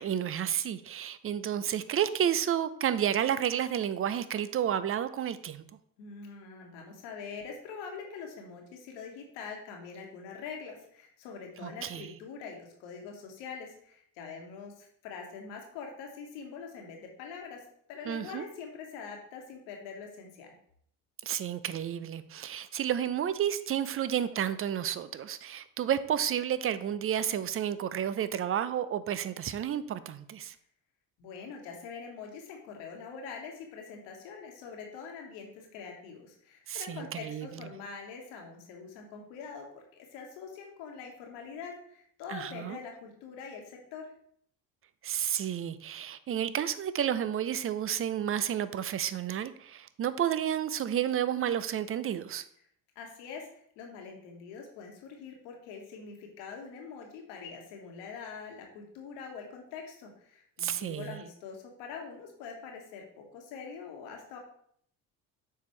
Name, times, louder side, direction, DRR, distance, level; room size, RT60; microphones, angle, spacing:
voice 1, 0.0-5.6 11.6-12.1 18.1-18.5 21.2-30.5 36.7-37.5 42.3-42.8 45.0-52.4 60.6-61.2, right 9 dB, 30° right, 14 dB, 0.5 m, -31 dB
voice 2, 6.0-17.6 17.9-20.5 31.2-44.1 52.9-63.0 63.3-64.4, left 5 dB, 75° left, 1 dB, 1.5 m, -44 dB
6.8 x 4.6 x 3.2 m, 0.65 s
hypercardioid pair, 60°, 44 cm